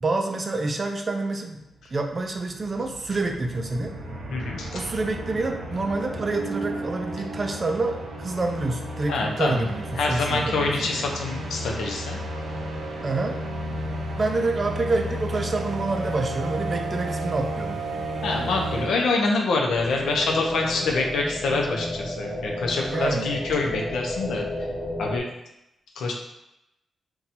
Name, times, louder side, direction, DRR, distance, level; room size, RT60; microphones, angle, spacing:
voice 1, 0.0-1.6 1.9-3.9 4.7-10.9 13.0-13.4 14.2-17.8 22.9-23.3, right 3 dB, 30° right, 4 dB, 0.3 m, -27 dB
sound 1, 1.7-1.8 2.0-19.4, right 1 dB, 90° right, 0.6 m, -33 dB
voice 2, 4.3-4.8 9.1-9.7 10.0-12.2 18.2-24.4 25.0-25.3 26.0-26.1, left 3 dB, 90° left, 0 dB, 0.5 m, -26 dB
sound 2, 19.7-25.2, left 1 dB, 25° left, 0.7 m, -32 dB
2.7 x 2.2 x 4.0 m, 0.87 s
wide cardioid pair, 135°, 0 cm